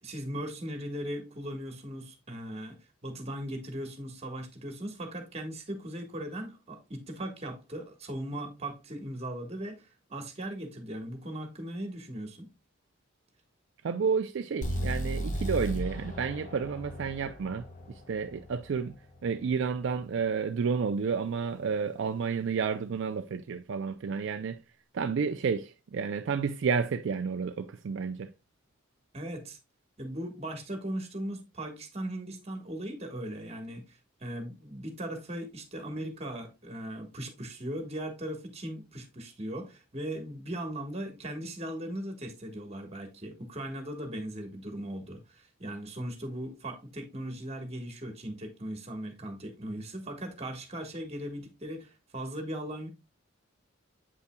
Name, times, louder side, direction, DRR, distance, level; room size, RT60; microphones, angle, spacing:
voice 1, 0.0-12.5 29.1-29.6 30.0-52.9, right 1 dB, 35° right, 1.5 m, -38 dB
voice 2, 13.8-19.0 19.2-24.6 24.9-28.3, right 5 dB, 65° right, 0.4 m, -31 dB
sound 1, 14.6-18.6, equal, 40° left, 1.4 m, -35 dB
7.9 x 5.5 x 2.2 m
head